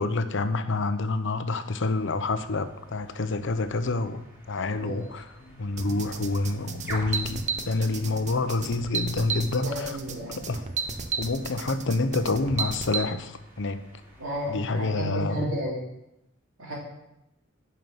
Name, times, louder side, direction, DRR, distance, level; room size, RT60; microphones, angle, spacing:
voice 1, 0.0-4.2 4.5-5.2 5.6-9.9 10.3-10.6 11.2-13.9 14.5-15.6, left 3 dB, 65° left, 10 dB, 0.8 m, -28 dB
sound 1, 1.9-15.3, right 1 dB, 10° right, 3.4 m, -48 dB
sound 2, 5.4-10.6, right 1 dB, 80° left, 1.3 m, -46 dB
sound 3, 5.8-13.0, right 6 dB, 35° right, 0.8 m, -33 dB
voice 2, 9.5-10.3 14.2-15.8 16.6-16.7, equal, 80° right, -8 dB, 3.3 m, -32 dB
10.5 x 5.7 x 7.8 m, 0.87 s
head